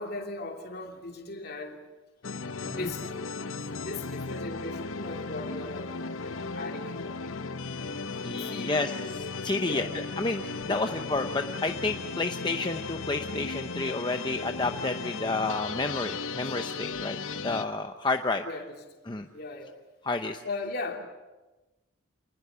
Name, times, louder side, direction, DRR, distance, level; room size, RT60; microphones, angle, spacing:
voice 1, 0.0-1.8 2.7-3.0 3.3-7.3 8.1-8.8 9.6-9.9 10.6-10.9 16.4-16.6 18.4-18.8 19.3-19.8 20.4-21.0, left 2 dB, 50° left, 3 dB, 2.8 m, -39 dB
sound 1, 2.2-17.6, left 4 dB, 90° left, 0.9 m, -36 dB
voice 2, 8.2-17.2 17.4-18.4 19.1-19.3 20.0-20.4, left 3 dB, 20° left, 6 dB, 0.7 m, -30 dB
27.0 x 20.0 x 7.0 m, 1.1 s
head